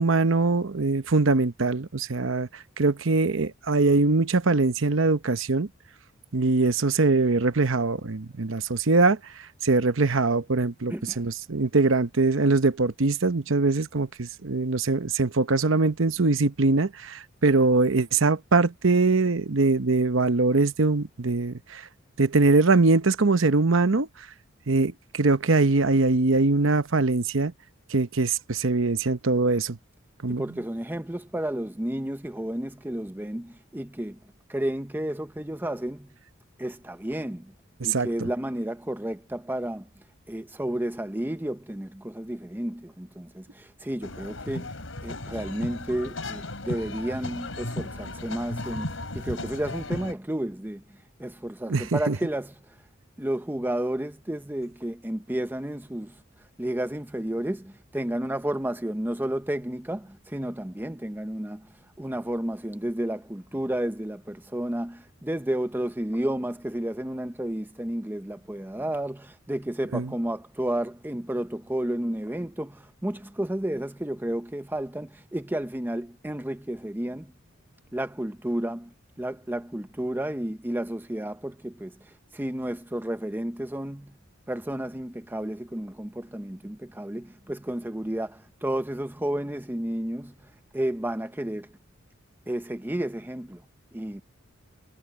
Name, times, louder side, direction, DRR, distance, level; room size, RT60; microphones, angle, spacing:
voice 1, 0.0-5.7 6.3-9.2 9.6-21.8 22.2-24.1 24.7-27.5 27.9-29.8 30.2-30.4 37.8-38.1 51.7-52.2 69.9-70.1, right 3 dB, 65° right, 0.9 m, -22 dB
voice 2, 10.9-11.3 30.3-34.2 34.5-36.1 36.6-37.5 37.8-39.9 40.3-44.7 45.0-50.8 51.2-52.7 53.2-56.2 56.6-61.7 62.0-77.3 77.9-78.9 79.2-82.0 82.3-84.1 84.5-90.3 90.7-91.7 92.5-93.6 93.9-94.2, right 1 dB, 10° right, 0.7 m, -31 dB
sound 1, 44.0-50.1, left 2 dB, 70° left, 3.8 m, -35 dB
head